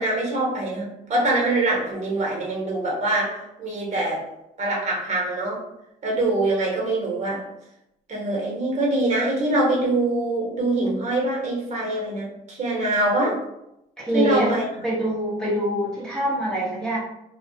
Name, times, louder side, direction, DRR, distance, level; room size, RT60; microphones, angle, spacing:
voice 1, 0.0-4.3 4.6-5.6 6.0-7.5 8.1-13.4 14.1-14.7, right 2 dB, 45° right, -3 dB, 1.0 m, -24 dB
voice 2, 14.0-14.6 14.8-17.0, right 1 dB, 5° left, -8 dB, 0.8 m, -24 dB
2.3 x 2.2 x 2.7 m, 0.84 s
cardioid pair, 110°, 17 cm